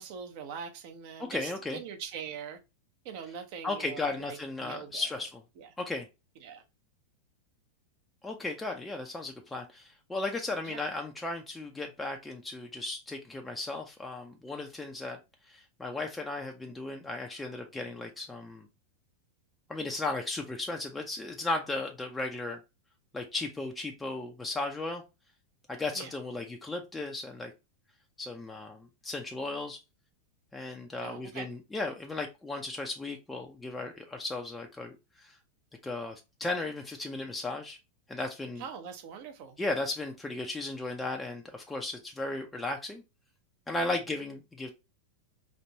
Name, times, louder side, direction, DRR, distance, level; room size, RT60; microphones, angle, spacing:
voice 1, 0.0-2.6 3.0-5.1 5.6-5.7 6.4-6.6 10.6-10.8 25.9-26.1 31.0-31.5 38.6-39.6, right 7 dB, 45° right, 0.8 m, -42 dB
voice 2, 1.2-1.8 3.6-5.4 5.8-6.1 8.2-15.2 15.5-18.7 19.7-22.6 23.1-25.0 25.7-27.5 28.2-29.8 30.5-35.4 35.8-37.8 38.1-38.6 39.6-43.0 43.7-44.7, left 2 dB, 10° left, 0.6 m, -35 dB
4.3 x 2.9 x 2.8 m
figure-of-eight pair, 90°, 0 cm